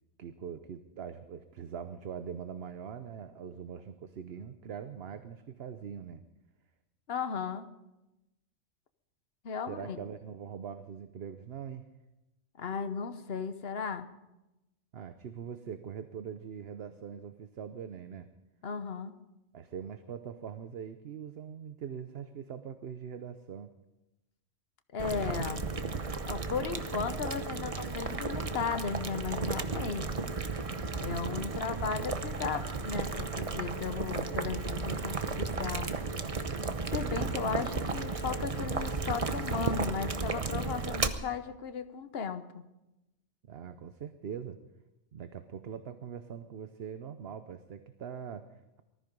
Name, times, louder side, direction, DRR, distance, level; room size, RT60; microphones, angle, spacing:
voice 1, 0.2-6.2 9.7-11.9 14.9-18.3 19.5-23.7 37.2-38.1 43.5-44.6 45.1-48.8, right 7 dB, 60° right, 9 dB, 1.0 m, -42 dB
voice 2, 7.1-7.7 9.4-10.0 12.6-14.1 18.6-19.2 24.9-25.7 26.3-30.3 30.9-35.9 36.9-42.6, left 6 dB, 55° left, 10 dB, 1.2 m, -36 dB
Boiling, 25.0-41.1, right 4 dB, 30° right, 0.8 m, -34 dB
19.5 x 14.0 x 5.3 m, 0.97 s
omnidirectional pair, 1.3 m